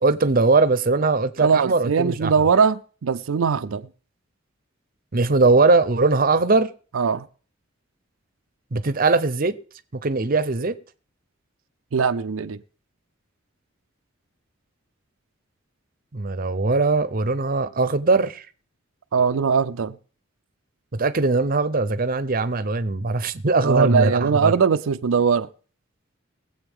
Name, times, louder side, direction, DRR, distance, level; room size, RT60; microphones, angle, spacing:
voice 1, 0.0-2.3 5.1-6.7 8.7-9.5 10.0-10.7 16.1-18.4 20.9-24.5, right 3 dB, 45° right, 0.7 m, -20 dB
voice 2, 1.4-3.9 6.9-7.3 11.9-12.6 19.1-20.0 23.6-25.5, right 6 dB, 85° right, 0.5 m, -20 dB
21.5 x 7.8 x 3.6 m
head